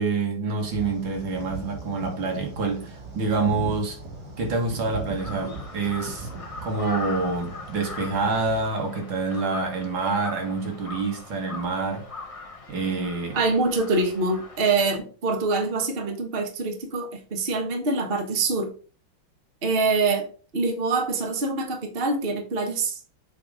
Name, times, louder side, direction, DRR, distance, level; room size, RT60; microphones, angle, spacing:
voice 1, 0.0-4.0 4.4-6.3 6.6-12.1 12.7-13.4, right 3 dB, 70° right, 2.3 m, -27 dB
sound 1, 0.6-8.7, right 3 dB, 55° right, 2.7 m, -39 dB
Crow, 5.2-15.0, left 3 dB, 35° left, 0.5 m, -40 dB
voice 2, 13.3-18.7 19.6-23.0, right 3 dB, 30° right, 1.3 m, -25 dB
8.1 x 3.7 x 4.8 m
omnidirectional pair, 2.2 m